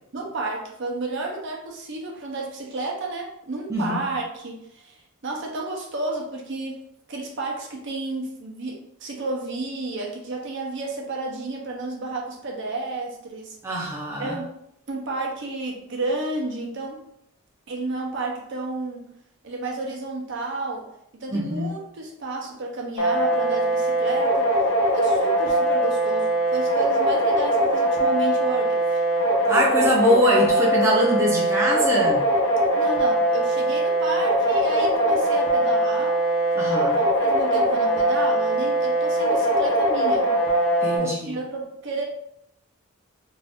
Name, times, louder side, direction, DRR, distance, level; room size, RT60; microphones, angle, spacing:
voice 1, 0.1-13.9 14.2-14.5 14.9-17.0 17.7-19.1 19.4-20.8 21.2-24.5 24.9-29.0 32.7-36.2 36.9-40.3 41.0-42.0, right 2 dB, 55° right, 0 dB, 0.6 m, -31 dB
voice 2, 13.6-14.4 21.3-21.7 29.5-32.2 36.6-37.0 40.8-41.2, equal, 15° right, -5 dB, 0.5 m, -23 dB
sound 1, 23.0-41.0, right 1 dB, 80° left, 0.7 m, -21 dB
2.6 x 2.4 x 3.4 m, 0.73 s
head